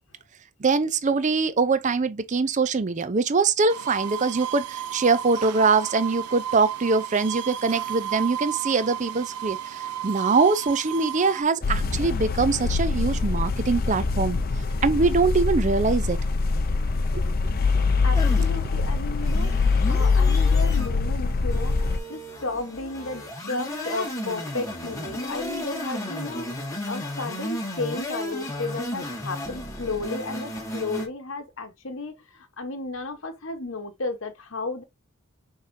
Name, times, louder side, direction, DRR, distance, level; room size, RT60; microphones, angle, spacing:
voice 1, 0.6-14.4 14.8-16.2 17.1-17.2, right 4 dB, 35° right, 0.5 m, -23 dB
sound 1, 3.7-11.4, right 10 dB, 90° right, 0.5 m, -33 dB
sound 2, 11.6-22.0, left 4 dB, 40° left, 0.5 m, -23 dB
voice 2, 18.0-34.8, left 3 dB, 60° left, 1.0 m, -33 dB
sound 3, 18.1-31.1, left 1 dB, 15° left, 1.3 m, -34 dB
5.4 x 3.6 x 2.6 m
head